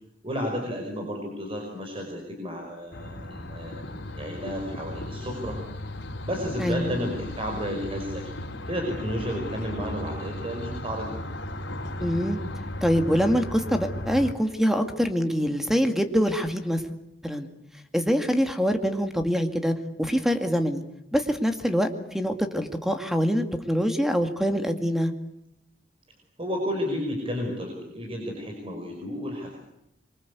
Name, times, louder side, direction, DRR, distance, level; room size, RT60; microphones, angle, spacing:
voice 1, 0.2-5.6 6.2-8.3 8.7-11.1 26.4-29.6, equal, 30° right, 2 dB, 5.3 m, -32 dB
sound 1, 2.9-14.3, left 1 dB, 80° left, 4.0 m, -36 dB
voice 2, 6.6-6.9 12.0-12.4 12.8-16.8 17.2-17.5 17.9-20.8 21.1-25.1, equal, ahead, 6 dB, 2.2 m, -24 dB
26.0 x 24.0 x 8.3 m, 0.83 s
head